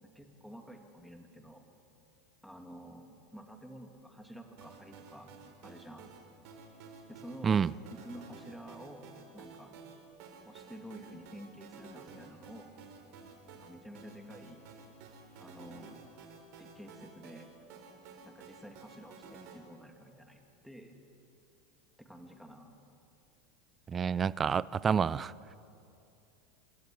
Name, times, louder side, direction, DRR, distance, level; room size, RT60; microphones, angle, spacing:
voice 1, 0.0-1.6 2.4-5.3 5.6-6.1 7.1-7.6 7.9-9.7 10.4-12.8 13.5-14.6 15.4-16.1 16.6-17.5 18.2-21.0 22.0-22.8, equal, ahead, 3 dB, 2.8 m, -50 dB
sound 1, 4.6-19.6, right 4 dB, 60° right, 3.7 m, -53 dB
voice 2, 23.9-25.3, right 7 dB, 25° right, 21 dB, 0.4 m, -28 dB
27.5 x 13.0 x 9.6 m, 2.7 s
hypercardioid pair, 105°, 0 cm